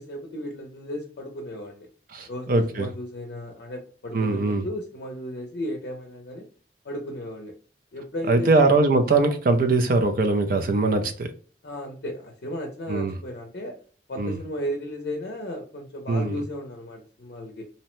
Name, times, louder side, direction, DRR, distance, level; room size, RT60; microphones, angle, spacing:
voice 1, 0.0-1.9 2.3-6.5 6.8-7.5 7.9-8.6 11.6-13.8 14.1-17.7, left 1 dB, 60° left, 0.5 m, -34 dB
voice 2, 2.1-2.9 4.1-4.6 8.3-11.3 12.9-13.1 14.2-14.4 16.1-16.4, right 3 dB, 50° right, 0.4 m, -21 dB
2.7 x 2.1 x 3.0 m
head